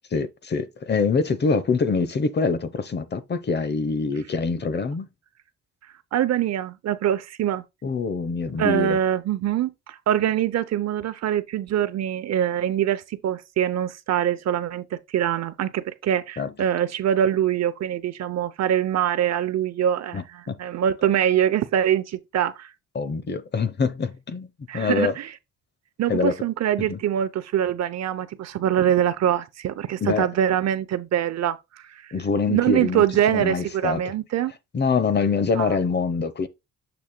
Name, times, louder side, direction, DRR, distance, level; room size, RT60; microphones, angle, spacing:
voice 1, 0.1-5.1 7.8-9.0 16.4-16.5 20.1-20.5 22.9-25.1 26.1-26.3 26.9-27.0 30.0-30.3 32.1-34.0 34.7-36.5, left 4 dB, 35° left, 0.8 m, -25 dB
voice 2, 6.1-7.6 8.6-22.7 24.7-25.3 26.0-31.8 32.5-34.5 35.6-35.8, right 10 dB, 60° right, 0.7 m, -24 dB
7.0 x 6.1 x 2.2 m
cardioid pair, 90°, 30 cm